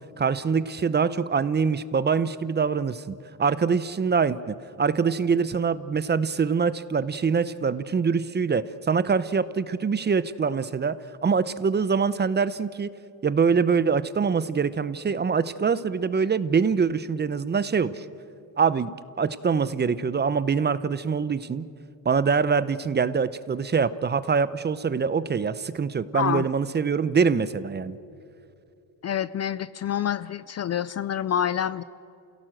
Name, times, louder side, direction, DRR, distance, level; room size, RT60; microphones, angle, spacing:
voice 1, 0.2-11.0 11.2-12.9 13.2-18.0 18.6-18.9 19.2-21.6 22.0-28.0, right 5 dB, 25° right, 15 dB, 0.7 m, -24 dB
voice 2, 26.1-26.5 29.0-31.8, left 9 dB, 35° left, 17 dB, 0.4 m, -27 dB
28.5 x 17.0 x 7.6 m, 2.6 s
cardioid pair, 110°, 44 cm